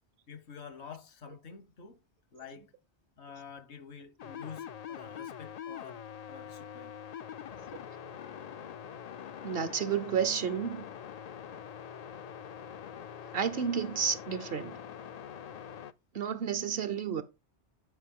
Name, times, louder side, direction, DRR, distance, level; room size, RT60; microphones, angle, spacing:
voice 1, 0.3-2.0 2.3-2.7 3.2-7.0 7.5-7.7, left 6 dB, 80° left, 1.3 m, -48 dB
sound 1, 4.2-15.9, left 9 dB, 60° left, 0.4 m, -44 dB
voice 2, 9.4-10.8 13.3-14.8 16.1-17.2, right 7 dB, 60° right, 1.0 m, -31 dB
9.2 x 5.2 x 3.6 m
omnidirectional pair, 1.1 m